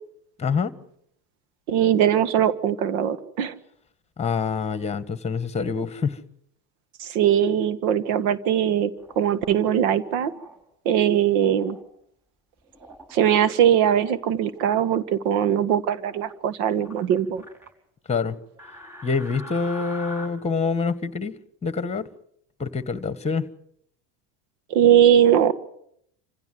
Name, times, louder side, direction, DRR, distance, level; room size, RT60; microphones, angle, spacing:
voice 1, 0.4-0.7 4.2-6.2 18.1-18.4 19.0-22.0 22.6-23.4, left 5 dB, 15° left, 1.4 m, -26 dB
voice 2, 1.7-3.5 7.0-10.3 10.8-11.8 13.1-17.4 24.7-25.5, right 9 dB, 75° right, 1.7 m, -20 dB
sound 1, 9.0-9.5 10.2-10.6 11.3-11.8 12.7-13.1 13.6-14.2 14.5-15.0 15.9-16.4 16.8-17.7 18.6-20.3, left 1 dB, 5° right, 5.3 m, -43 dB
26.5 x 16.0 x 7.8 m
supercardioid pair, 105°, 44 cm